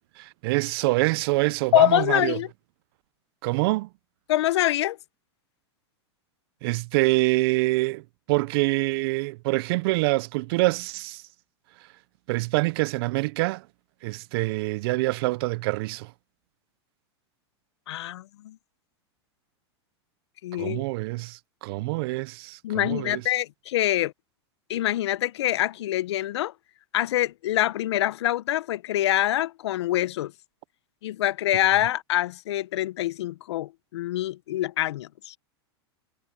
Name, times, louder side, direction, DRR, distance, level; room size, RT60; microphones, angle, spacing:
voice 1, 0.2-2.4 3.4-3.9 6.6-8.0 8.3-11.2 12.3-13.6 14.0-16.1 20.6-23.2, right 22 dB, 60° right, 0.6 m, -25 dB
voice 2, 1.7-2.5 4.3-5.0 17.9-18.6 20.4-20.8 22.6-24.1 24.7-26.5 26.9-30.3 31.0-35.4, left 14 dB, 75° left, 0.9 m, -25 dB
hypercardioid pair, 110°, 14 cm